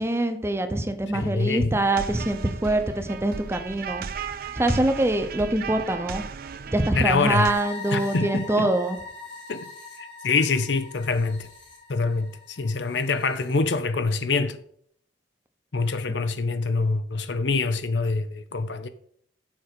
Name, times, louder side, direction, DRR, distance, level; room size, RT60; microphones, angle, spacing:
voice 1, 0.0-4.1 4.5-6.2 6.7-9.0, right 1 dB, 15° right, 0.8 m, -24 dB
voice 2, 1.1-1.7 6.9-7.5 7.9-8.7 9.5-9.7 10.0-11.5 11.9-14.6 15.7-18.9, left 4 dB, 70° left, 0.7 m, -25 dB
sound 1, 1.9-7.5, right 6 dB, 55° right, 0.5 m, -36 dB
sound 2, 7.3-13.6, left 3 dB, 85° left, 3.2 m, -41 dB
7.4 x 5.0 x 6.1 m
head